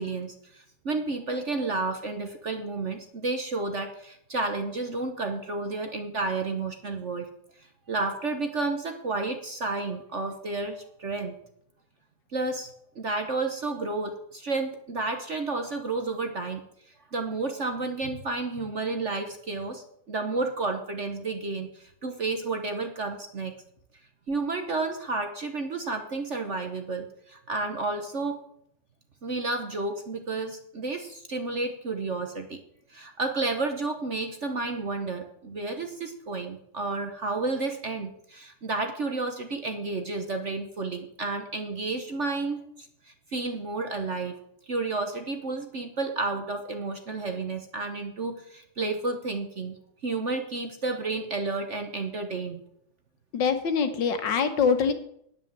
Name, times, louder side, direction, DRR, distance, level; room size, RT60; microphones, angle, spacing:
voice 1, 0.0-7.3 7.6-11.3 12.3-23.5 24.3-28.4 29.2-32.6 32.9-44.4 44.7-49.8 50.0-52.6, right 3 dB, 45° right, 6 dB, 1.1 m, -31 dB
voice 2, 53.3-54.9, left 6 dB, 65° left, 8 dB, 1.8 m, -24 dB
10.5 x 9.0 x 7.4 m, 0.72 s
omnidirectional pair, 2.2 m